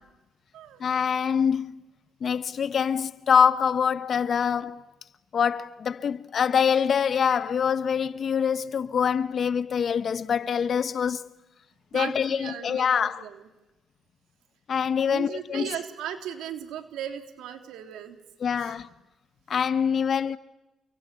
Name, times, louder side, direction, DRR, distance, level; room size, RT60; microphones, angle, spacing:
voice 1, 0.8-1.8 2.2-4.8 5.3-11.3 11.9-13.2 14.7-15.7 18.4-18.9 19.5-20.4, left 7 dB, 50° left, 1.1 m, -25 dB
voice 2, 11.9-13.4 15.1-18.2 18.5-18.7, right 9 dB, 85° right, 3.0 m, -37 dB
29.5 x 23.5 x 8.4 m
cardioid pair, 90°, 0 cm